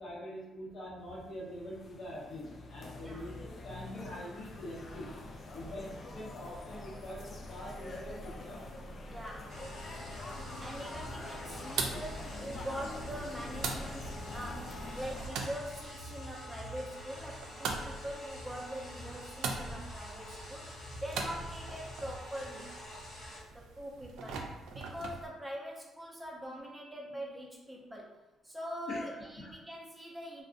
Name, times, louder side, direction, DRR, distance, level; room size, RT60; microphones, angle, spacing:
voice 1, 0.0-5.1 5.5-8.7 28.9-29.0 29.4-29.5, left 1 dB, 65° left, -6 dB, 0.7 m, -44 dB
sound 1, 1.1-15.3, left 2 dB, 45° left, 0.3 m, -45 dB
voice 2, 9.1-9.6 10.6-22.7 23.5-28.2 28.4-30.4, equal, 10° right, -2 dB, 0.5 m, -43 dB
sound 2, 9.5-23.4, left 1 dB, 90° left, 1.1 m, -46 dB
sound 3, 10.1-25.3, right 4 dB, 85° right, 0.3 m, -43 dB
2.4 x 2.0 x 2.5 m, 1.0 s
cardioid pair, 90°, 0 cm